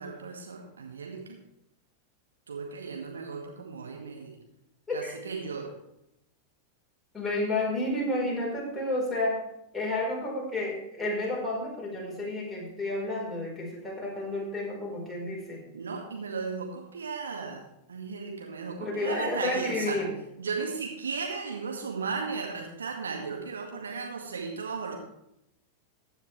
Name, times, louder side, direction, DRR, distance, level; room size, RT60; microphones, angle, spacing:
voice 1, 0.0-1.4 2.5-4.4 4.9-5.7 15.7-17.6 17.9-20.0 20.4-24.9, right 5 dB, 70° right, 1 dB, 2.0 m, -35 dB
voice 2, 7.1-9.4 9.7-15.6 18.8-20.1, left 2 dB, 10° left, -3 dB, 4.6 m, -31 dB
15.0 x 9.5 x 3.3 m, 0.82 s
figure-of-eight pair, 90°, 0 cm